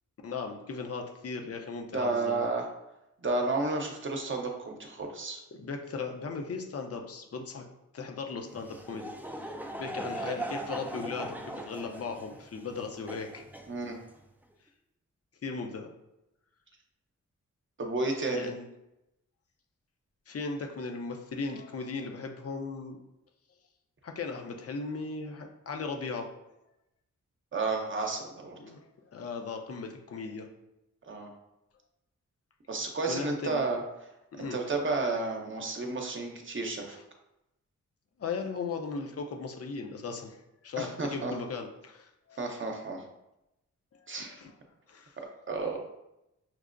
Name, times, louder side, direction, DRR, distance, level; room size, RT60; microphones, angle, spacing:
voice 1, 0.2-2.5 5.6-7.6 7.9-13.4 15.4-15.9 18.3-18.7 20.3-23.0 24.0-26.3 28.6-28.8 29.1-30.5 33.1-33.6 34.3-34.6 36.9-37.0 38.2-40.4 40.6-42.4 44.0-44.5 44.9-45.2, left 4 dB, 55° left, 3 dB, 0.6 m, -37 dB
voice 2, 1.9-2.7 3.2-5.4 13.7-14.0 17.8-18.5 27.5-28.5 31.0-31.3 32.7-33.8 34.4-37.0 40.8-41.3 42.4-43.0 44.1-44.4 45.5-45.8, right 3 dB, 40° right, 2 dB, 0.7 m, -31 dB
Laughter / Crowd, 8.5-14.2, right 1 dB, 5° right, 0.4 m, -40 dB
5.9 x 2.1 x 2.5 m, 0.90 s
cardioid pair, 65°, 30 cm